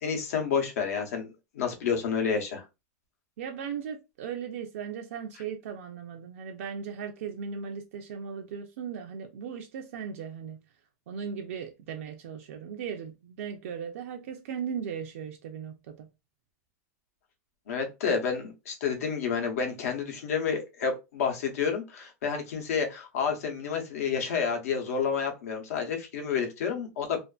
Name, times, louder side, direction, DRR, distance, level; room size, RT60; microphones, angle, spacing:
voice 1, 0.0-1.3 1.5-2.6 17.7-27.2, left 6 dB, 70° left, 0.8 m, -29 dB
voice 2, 3.4-10.6 11.1-16.1, right 7 dB, 60° right, 0.4 m, -37 dB
2.5 x 2.4 x 2.3 m
supercardioid pair, 170°, 8 cm